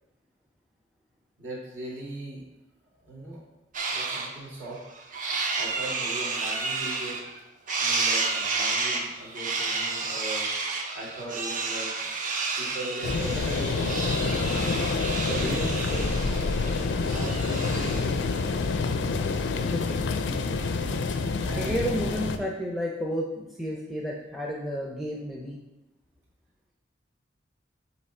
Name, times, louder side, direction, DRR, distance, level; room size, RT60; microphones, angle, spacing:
voice 1, 1.4-2.4 3.0-3.4 3.9-4.8 5.5-7.2 7.8-10.5 10.9-11.9 12.6-14.0 15.3-16.6 16.9-18.1 21.4-21.9, right 1 dB, 75° right, -5 dB, 2.1 m, -38 dB
sound 1, 3.7-4.3 4.7-7.4 7.7-18.1, right 4 dB, 45° right, 0.7 m, -31 dB
sound 2, 13.0-22.4, left 4 dB, 75° left, 0.4 m, -27 dB
voice 2, 19.7-20.1 20.9-21.0 21.5-25.6, equal, ahead, -2 dB, 0.5 m, -32 dB
7.7 x 3.1 x 4.3 m, 0.96 s
head